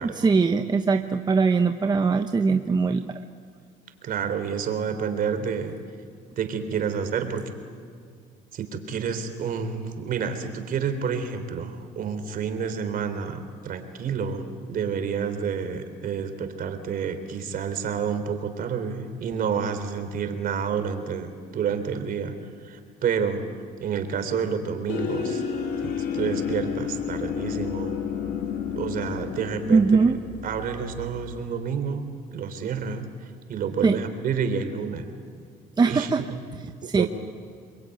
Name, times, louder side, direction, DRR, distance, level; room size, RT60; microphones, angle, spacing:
voice 1, 0.0-3.2 29.7-30.2 33.8-34.0 35.8-36.2 36.5-37.1, right 4 dB, 25° right, 6 dB, 1.0 m, -21 dB
voice 2, 4.0-5.7 6.4-7.4 8.5-22.3 22.6-23.4 23.8-25.4 25.8-28.0 28.8-29.8 30.4-35.1 35.8-36.4 36.8-37.1, right 6 dB, 55° right, 8 dB, 3.6 m, -29 dB
sound 1, 24.9-31.5, left 7 dB, 85° left, 3.4 m, -31 dB
28.5 x 22.5 x 9.3 m, 2.1 s
cardioid pair, 110°, 17 cm